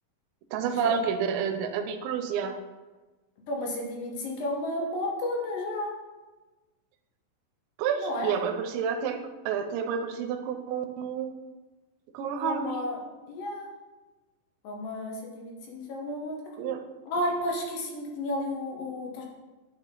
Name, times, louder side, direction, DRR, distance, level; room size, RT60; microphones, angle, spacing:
voice 1, 0.5-2.6 7.8-11.3 12.1-12.8 16.6-16.8, right 7 dB, 80° right, 6 dB, 2.2 m, -29 dB
voice 2, 3.5-5.9 8.0-8.4 12.4-13.0 13.3-13.7 14.6-16.4 17.1-19.2, left 1 dB, 75° left, 0 dB, 2.8 m, -32 dB
9.3 x 4.7 x 3.8 m, 1.2 s
omnidirectional pair, 4.1 m